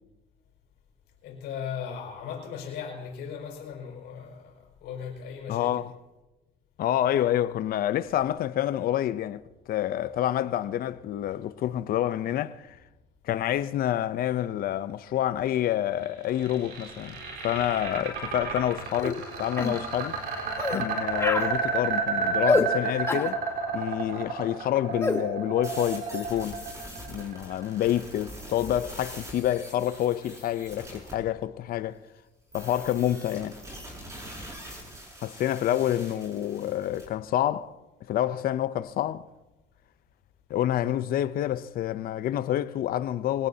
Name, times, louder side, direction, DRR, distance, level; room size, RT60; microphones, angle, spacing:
voice 1, 1.2-5.9 35.6-36.3, left 7 dB, 80° left, 5.3 m, -38 dB
voice 2, 5.5-5.9 6.8-12.8 13.2-17.2 17.4-20.2 20.7-23.4 23.7-26.6 27.1-32.0 32.5-33.6 35.2-37.7 38.1-39.3 40.5-43.5, left 12 dB, 60° left, 0.7 m, -28 dB
sound 1, 16.0-28.1, right 5 dB, 70° right, 4.1 m, -31 dB
sound 2, 19.0-19.2 19.6-19.8 20.6-20.8 21.2-21.5 22.5-22.7 23.1-23.3 25.0-25.2, left 2 dB, 15° left, 1.3 m, -26 dB
sound 3, 25.6-31.1 32.5-37.1, right 1 dB, 20° right, 6.3 m, -44 dB
24.0 x 18.0 x 2.8 m
cardioid pair, 110°, 17 cm